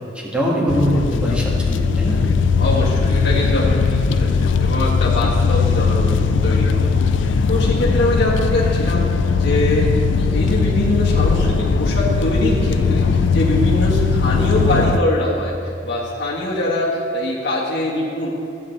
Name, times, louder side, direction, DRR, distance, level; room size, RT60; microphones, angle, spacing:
voice 1, 0.1-2.2, equal, 5° right, -5 dB, 1.8 m, -21 dB
sound 1, 0.7-15.0, left 5 dB, 85° left, 0.4 m, -18 dB
voice 2, 2.6-6.9 7.2-9.0 9.4-18.3, left 1 dB, 65° left, -5 dB, 1.5 m, -23 dB
14.0 x 8.5 x 3.3 m, 2.5 s
head